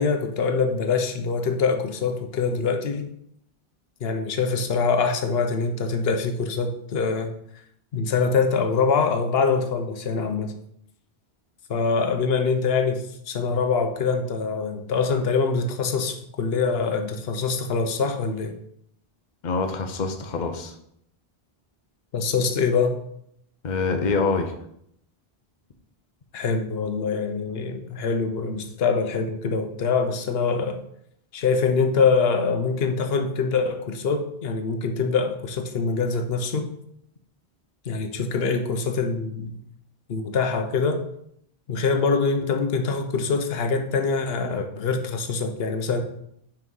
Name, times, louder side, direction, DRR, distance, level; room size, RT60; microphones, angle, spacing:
voice 1, 0.0-3.1 4.0-7.3 7.9-10.5 11.7-18.5 22.1-23.0 26.3-30.8 31.3-36.7 37.9-39.6 40.1-41.0 41.7-46.0, left 5 dB, 70° left, 6 dB, 1.0 m, -24 dB
voice 2, 19.4-20.7 23.6-24.5, left 4 dB, 50° left, 5 dB, 0.9 m, -25 dB
6.0 x 4.6 x 5.4 m, 0.72 s
omnidirectional pair, 1.1 m